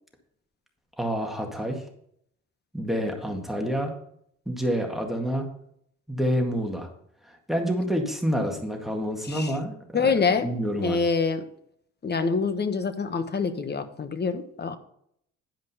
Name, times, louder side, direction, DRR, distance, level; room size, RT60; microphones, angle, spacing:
voice 1, 1.0-1.8 2.7-3.9 4.5-5.5 6.1-6.9 7.2-9.7 10.0-11.0, equal, ahead, 2 dB, 1.9 m, -28 dB
voice 2, 9.2-9.6 9.9-10.5 10.8-11.5 12.0-14.8, left 5 dB, 35° left, 9 dB, 1.2 m, -26 dB
10.5 x 5.2 x 5.5 m, 0.69 s
cardioid pair, 90°, 30 cm